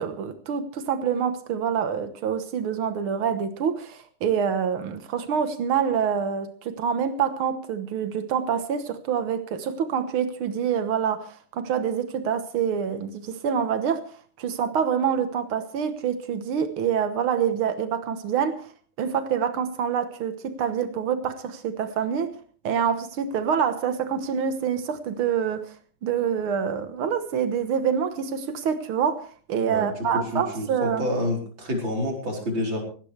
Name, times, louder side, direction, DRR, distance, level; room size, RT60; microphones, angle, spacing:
voice 1, 0.0-14.1 14.4-18.7 19.0-22.3 22.6-25.7 26.0-31.1, right 7 dB, 90° right, 9 dB, 2.1 m, -26 dB
voice 2, 29.6-32.8, left 1 dB, 65° right, 0 dB, 5.0 m, -28 dB
18.0 x 17.0 x 3.3 m, 0.43 s
omnidirectional pair, 2.2 m